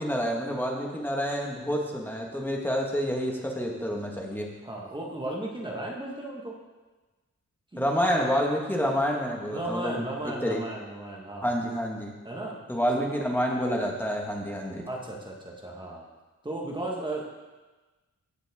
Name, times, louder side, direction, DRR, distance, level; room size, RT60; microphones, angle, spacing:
voice 1, 0.0-4.5 7.8-10.1 10.4-10.6 11.4-12.1 12.7-14.8, equal, 5° left, -1 dB, 1.6 m, -28 dB
voice 2, 4.6-6.5 7.7-7.9 9.5-11.6 12.2-12.6 13.0-13.1 14.8-16.0 16.4-17.2, right 1 dB, 15° right, -2 dB, 1.5 m, -35 dB
15.5 x 7.5 x 3.6 m, 1.2 s
wide cardioid pair, 155°, 30 cm